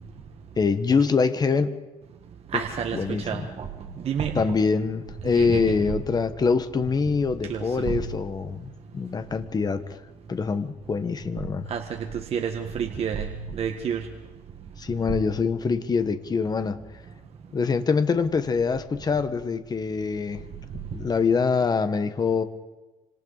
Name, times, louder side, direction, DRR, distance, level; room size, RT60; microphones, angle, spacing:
voice 1, 0.6-1.8 2.9-3.4 4.3-10.0 10.3-11.7 14.8-16.8 17.5-20.4 20.7-22.4, left 5 dB, 25° left, 10 dB, 1.4 m, -24 dB
voice 2, 2.5-3.7 4.0-4.4 5.2-5.7 7.5-7.9 11.7-14.1, right 7 dB, 45° right, 4 dB, 1.6 m, -29 dB
27.0 x 26.5 x 4.1 m, 1.1 s
cardioid pair, 130°, 15 cm